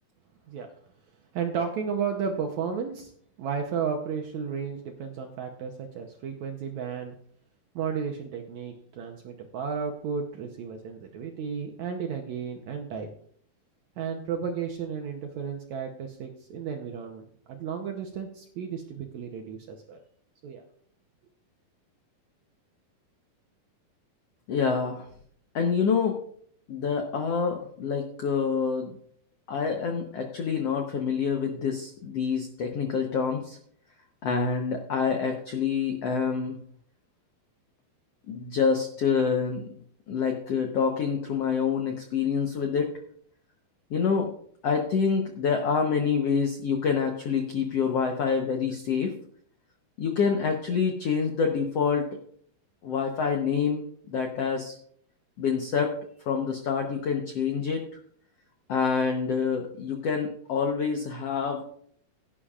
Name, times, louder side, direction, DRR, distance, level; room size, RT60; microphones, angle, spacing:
voice 1, 1.3-3.1 3.4-7.1 7.7-13.1 14.0-17.2 17.5-20.0 20.4-20.6, right 6 dB, 75° right, 3 dB, 1.7 m, -33 dB
voice 2, 24.5-25.1 25.5-26.2 26.7-29.0 29.5-33.6 34.2-36.6 38.3-39.7 40.1-42.9 43.9-44.3 44.6-49.1 50.0-52.2 52.8-53.8 54.1-54.7 55.4-55.9 56.3-57.8 58.7-61.6, left 6 dB, 85° left, 3 dB, 1.4 m, -27 dB
16.5 x 10.0 x 2.4 m, 0.62 s
omnidirectional pair, 4.3 m